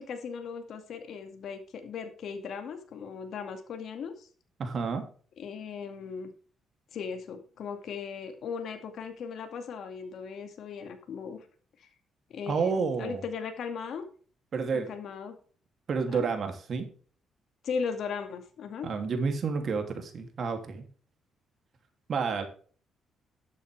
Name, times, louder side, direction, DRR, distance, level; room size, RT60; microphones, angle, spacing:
voice 1, 0.0-4.3 5.4-6.3 6.9-11.4 11.8-11.9 12.3-14.0 14.9-15.3 16.1-16.3 17.6-18.9, left 6 dB, 65° left, 6 dB, 2.2 m, -37 dB
voice 2, 4.6-5.0 12.5-13.2 14.5-14.9 15.9-16.9 18.8-20.9 22.1-22.5, right 5 dB, 55° right, 6 dB, 2.8 m, -30 dB
11.5 x 8.4 x 3.5 m, 0.42 s
cardioid pair, 90°, 0 cm